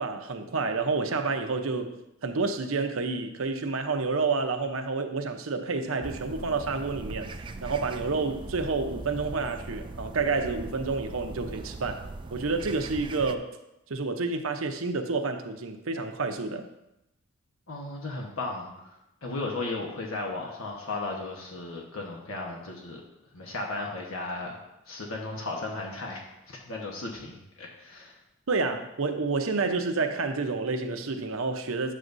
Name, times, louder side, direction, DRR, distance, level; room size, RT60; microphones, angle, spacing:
voice 1, 0.0-2.0 2.2-7.4 7.6-13.5 13.9-16.7 28.5-31.9, right 4 dB, 80° right, 6 dB, 0.8 m, -29 dB
sound 1, 6.0-13.4, right 3 dB, 25° right, 0.3 m, -40 dB
voice 2, 17.7-19.0 19.2-23.0 23.3-28.2, left 2 dB, 80° left, -1 dB, 1.2 m, -35 dB
10.5 x 7.5 x 2.6 m, 0.89 s
head